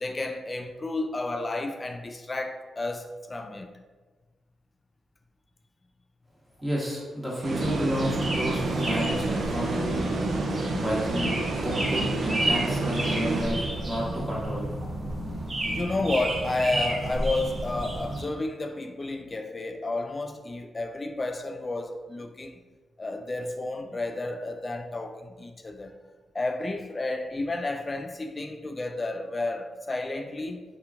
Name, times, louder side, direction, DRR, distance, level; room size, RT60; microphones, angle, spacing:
voice 1, 0.0-3.7 15.7-22.6 23.0-25.9 26.3-30.6, left 2 dB, 35° left, 0.3 m, -31 dB
voice 2, 6.6-10.0 10.8-14.7, equal, 10° right, 1.1 m, -31 dB
sound 1, 7.4-14.0, right 3 dB, 65° right, 0.4 m, -30 dB
sound 2, 7.6-18.3, right 1 dB, 40° right, 0.9 m, -31 dB
2.9 x 2.3 x 2.4 m
supercardioid pair, 45°, 0 cm